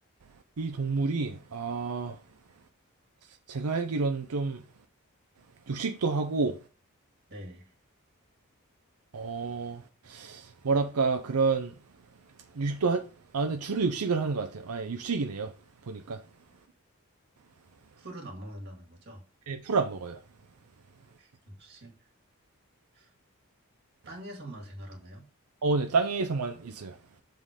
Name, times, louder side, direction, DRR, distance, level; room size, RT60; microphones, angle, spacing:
voice 1, 0.6-2.2 3.5-4.6 5.7-6.6 9.1-11.7 12.5-13.1 13.3-15.5 15.8-16.2 19.5-20.2 25.6-27.0, right 4 dB, 85° right, 0.6 m, -29 dB
voice 2, 7.3-7.7 18.0-19.2 21.2-22.1 22.9-23.1 24.1-25.3, right 1 dB, 50° right, 2.0 m, -44 dB
7.4 x 3.9 x 4.9 m
head